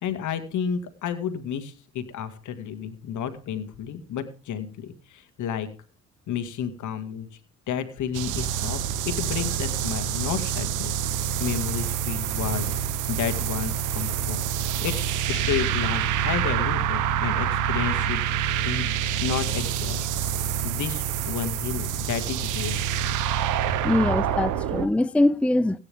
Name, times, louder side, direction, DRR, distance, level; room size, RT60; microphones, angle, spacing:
voice 1, 0.0-5.7 6.3-7.3 7.7-8.8 9.0-12.7 13.1-14.4 14.8-18.2 18.6-18.9 19.2-20.1 20.6-22.8, left 8 dB, 75° left, 2.1 m, -31 dB
sound 1, 8.1-24.9, right 9 dB, 85° right, 0.8 m, -27 dB
voice 2, 23.8-25.8, left 1 dB, 5° left, 0.5 m, -22 dB
16.5 x 9.6 x 3.5 m
cardioid pair, 90°, 30 cm